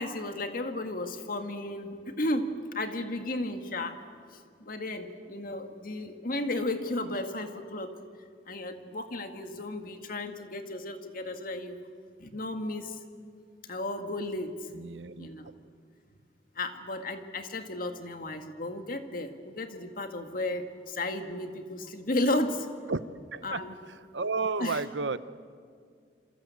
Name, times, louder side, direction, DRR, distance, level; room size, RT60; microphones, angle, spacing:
voice 1, 0.0-4.0 4.3-7.9 8.5-11.8 12.2-13.0 13.6-14.7 15.2-15.5 16.6-22.7 23.4-23.7 24.6-24.8, left 1 dB, 50° left, 6 dB, 2.0 m, -34 dB
voice 2, 14.7-15.3 22.9-23.0 23.3-25.2, right 4 dB, 90° right, 14 dB, 0.9 m, -32 dB
27.5 x 26.0 x 8.3 m, 2.1 s
head